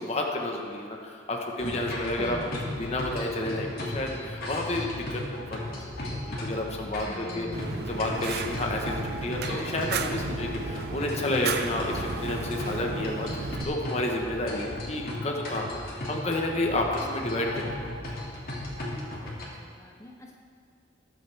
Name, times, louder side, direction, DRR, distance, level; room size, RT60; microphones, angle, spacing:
voice 1, 0.0-2.4 2.8-5.2 5.5-7.5 7.9-17.8 18.1-18.2, left 1 dB, 35° left, 1 dB, 1.1 m, -31 dB
sound 1, 1.6-19.4, left 1 dB, 55° left, 2.3 m, -36 dB
voice 2, 2.2-2.7 7.1-7.8 19.0-20.3, left 1 dB, 15° left, 1 dB, 0.7 m, -41 dB
Fire, 7.5-13.6, right 4 dB, 55° right, 0.6 m, -34 dB
19.5 x 7.7 x 3.4 m, 2.2 s
head